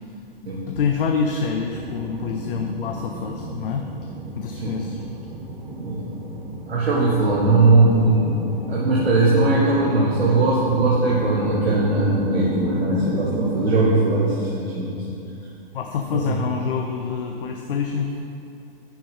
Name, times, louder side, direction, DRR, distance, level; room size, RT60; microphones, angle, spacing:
voice 1, 0.7-3.8 4.3-5.0 7.6-7.8 15.7-18.2, left 6 dB, 65° left, 4 dB, 0.7 m, -26 dB
sound 1, 1.6-13.9, right 2 dB, 15° right, 1.3 m, -31 dB
voice 2, 6.7-15.0 16.3-16.4, right 2 dB, 85° right, -5 dB, 1.4 m, -20 dB
9.5 x 7.0 x 3.7 m, 2.7 s
hypercardioid pair, 125°, 30 cm